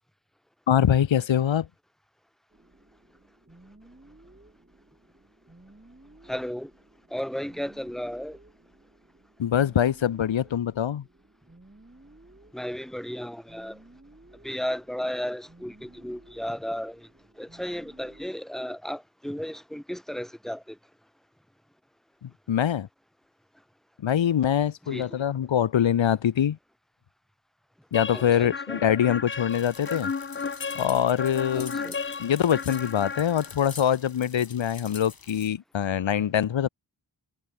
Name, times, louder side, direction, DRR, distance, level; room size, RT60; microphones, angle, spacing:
voice 1, 0.7-1.7 9.4-11.0 22.2-22.9 24.0-26.6 27.9-30.1 30.8-31.9 32.2-36.7, left 9 dB, 85° left, 0.8 m, -24 dB
sound 1, 2.5-18.3, right 2 dB, 25° right, 6.7 m, -55 dB
voice 2, 6.2-6.7 7.1-8.4 12.5-13.8 14.4-17.1 17.4-20.8 24.9-25.1 28.1-28.8 31.5-32.0, equal, ahead, 1.7 m, -34 dB
sound 2, 27.9-33.8, left 5 dB, 30° left, 0.5 m, -34 dB
sound 3, 29.5-35.5, left 4 dB, 50° left, 2.3 m, -46 dB
wide cardioid pair, 80°, 44 cm